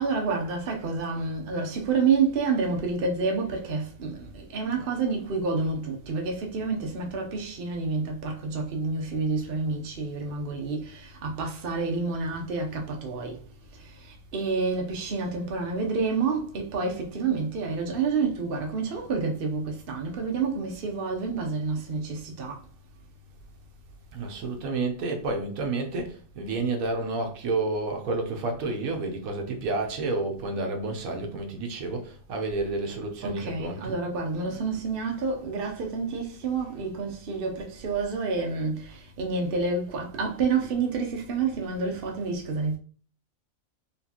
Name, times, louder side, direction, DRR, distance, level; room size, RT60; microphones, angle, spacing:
voice 1, 0.0-13.4 13.7-22.6 33.2-42.8, right 4 dB, 50° right, 0.8 m, -29 dB
voice 2, 24.1-33.9, right 3 dB, 85° right, 1.3 m, -30 dB
4.3 x 3.2 x 2.9 m
omnidirectional pair, 1.4 m